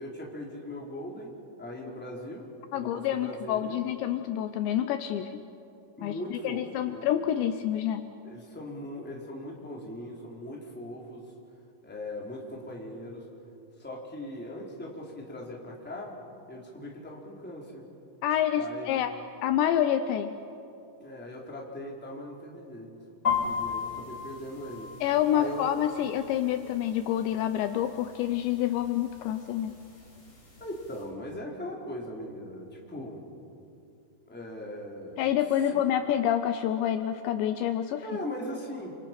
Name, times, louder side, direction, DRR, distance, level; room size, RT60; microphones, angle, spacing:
voice 1, 0.0-2.5 2.7-3.9 6.0-7.1 8.2-11.3 11.8-13.3 13.8-16.2 16.5-17.9 18.5-19.2 21.0-22.9 23.4-24.9 25.3-25.9 30.6-33.2 34.3-35.2 35.7-35.9 38.0-38.9, left 1 dB, 5° left, -3 dB, 2.8 m, -40 dB
voice 2, 2.7-5.4 6.0-8.0 18.2-19.1 19.4-20.3 25.0-29.8 35.2-38.0, left 10 dB, 80° left, 9 dB, 2.8 m, -27 dB
sound 1, 23.2-31.1, left 6 dB, 25° left, 4.2 m, -37 dB
30.0 x 26.0 x 6.0 m, 2.7 s
omnidirectional pair, 5.5 m